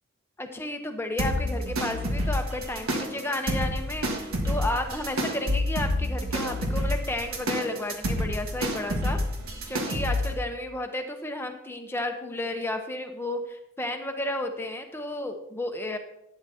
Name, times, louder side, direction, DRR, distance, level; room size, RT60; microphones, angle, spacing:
voice 1, 0.4-9.2 9.7-16.0, left 1 dB, 10° left, 5 dB, 0.8 m, -32 dB
sound 1, 1.2-10.3, equal, 85° right, 1.6 m, -29 dB
12.0 x 9.0 x 2.8 m, 0.84 s
head